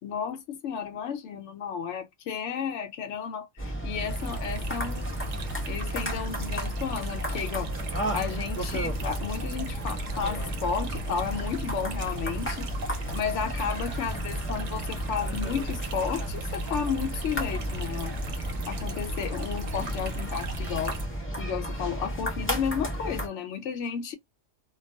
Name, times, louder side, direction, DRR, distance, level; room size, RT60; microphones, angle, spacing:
voice 1, 0.0-5.2 5.7-7.7 8.1-12.7 13.1-21.0 21.4-24.1, left 7 dB, 75° left, 0.9 m, -33 dB
sound 1, 3.6-23.3, right 1 dB, 15° left, 0.5 m, -33 dB
sound 2, 4.1-21.1, right 1 dB, 70° right, 1.0 m, -38 dB
2.3 x 2.3 x 2.5 m
omnidirectional pair, 1.3 m